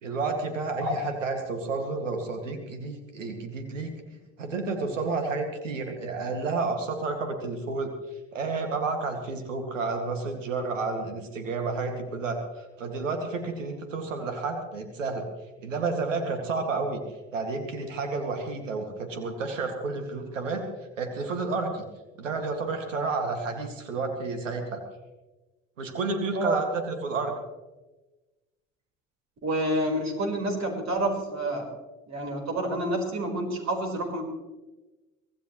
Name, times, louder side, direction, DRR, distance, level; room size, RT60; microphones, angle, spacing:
voice 1, 0.0-3.9 4.4-7.9 8.3-12.4 12.8-15.3 15.6-17.0 17.3-20.6 21.0-21.8 22.2-24.8 25.8-27.4, right 3 dB, 80° right, 4 dB, 2.3 m, -30 dB
voice 2, 29.4-31.7 32.1-34.2, right 1 dB, 45° right, 2 dB, 4.8 m, -28 dB
24.5 x 16.5 x 3.2 m, 1.1 s
figure-of-eight pair, 60°, 38 cm